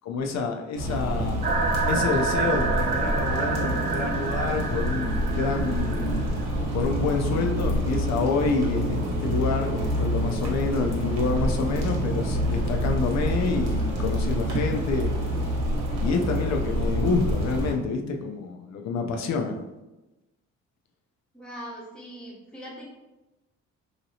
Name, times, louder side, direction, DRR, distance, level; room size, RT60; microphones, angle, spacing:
voice 1, 0.0-1.5 1.9-6.3 6.7-15.1 16.0-19.6, left 4 dB, 60° left, 3 dB, 0.5 m, -28 dB
sound 1, 0.7-17.7, equal, 65° right, 1.1 m, -27 dB
sound 2, 1.4-6.4, right 4 dB, 30° right, 0.4 m, -28 dB
voice 2, 21.3-22.9, equal, 5° left, -5 dB, 0.9 m, -41 dB
2.8 x 2.7 x 2.8 m, 1.0 s
cardioid pair, 90°, 30 cm